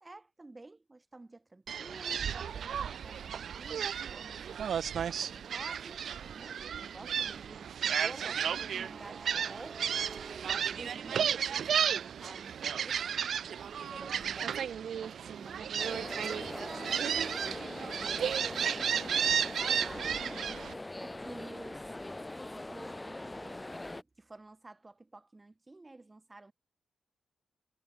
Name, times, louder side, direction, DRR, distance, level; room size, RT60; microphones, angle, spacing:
voice 1, 0.0-4.7 5.2-9.9 10.5-13.0 13.8-14.5 15.0-17.5 18.1-20.6 21.0-21.9 22.5-23.7 24.2-26.5, right 2 dB, 25° right, 2.4 m, -50 dB
Gull seagull, 1.7-20.7, right 8 dB, 70° right, 0.5 m, -33 dB
sound 1, 8.2-12.1 12.5-16.1, right 4 dB, 40° right, 5.1 m, -53 dB
sound 2, 15.8-24.0, left 2 dB, 15° left, 1.0 m, -42 dB
cardioid pair, 70°, 0 cm